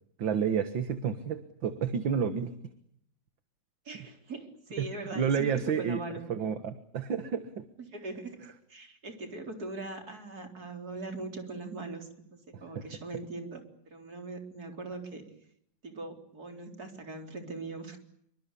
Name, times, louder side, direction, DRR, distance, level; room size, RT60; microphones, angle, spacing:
voice 1, 0.2-2.5 4.8-6.0 6.3-7.6 12.8-12.9, right 7 dB, 70° right, 10 dB, 2.2 m, -30 dB
voice 2, 3.8-6.3 7.9-8.4 8.7-15.2 15.8-18.0, right 2 dB, 50° right, 5 dB, 4.8 m, -41 dB
27.0 x 25.0 x 8.5 m, 0.71 s
omnidirectional pair, 2.2 m